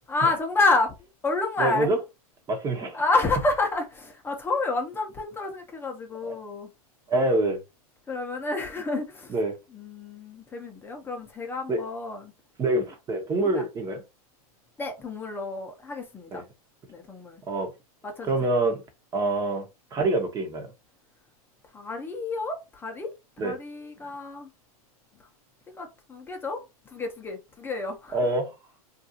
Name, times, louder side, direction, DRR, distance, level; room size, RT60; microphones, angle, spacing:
voice 1, 0.1-1.9 2.9-6.7 8.1-9.4 9.7-12.3 13.4-13.6 14.8-16.4 16.9-17.4 18.0-18.7 21.7-24.5 25.8-28.2, left 3 dB, 10° left, 0.7 m, -29 dB
voice 2, 1.6-2.0 2.5-3.0 6.2-6.4 7.1-7.6 9.3-9.6 11.7-11.8 12.6-14.0 16.3-16.4 17.5-17.7 18.2-18.8 19.1-19.6 19.9-20.7 23.4-23.5 28.1-28.5, right 2 dB, 20° right, 0.9 m, -25 dB
2.6 x 2.5 x 2.7 m
hypercardioid pair, 130°, 19 cm